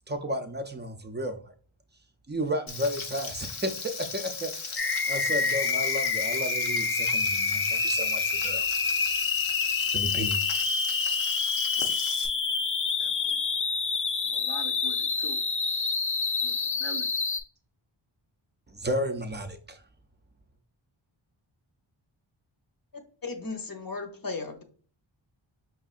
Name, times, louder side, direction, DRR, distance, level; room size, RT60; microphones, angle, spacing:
voice 1, 0.1-1.4 2.3-3.7 4.0-8.7 9.9-10.4 18.7-19.8, equal, 20° right, 6 dB, 0.5 m, -33 dB
Frying (food), 2.7-12.3, left 5 dB, 75° left, 0.8 m, -37 dB
sound 1, 4.8-17.4, left 4 dB, 30° left, 0.3 m, -27 dB
voice 2, 13.0-13.4 14.2-15.5 16.4-17.2, right 7 dB, 80° right, 1 dB, 0.6 m, -44 dB
voice 3, 23.2-24.6, left 3 dB, 45° left, 4 dB, 0.8 m, -35 dB
5.4 x 2.7 x 2.4 m, 0.42 s
wide cardioid pair, 75°, 48 cm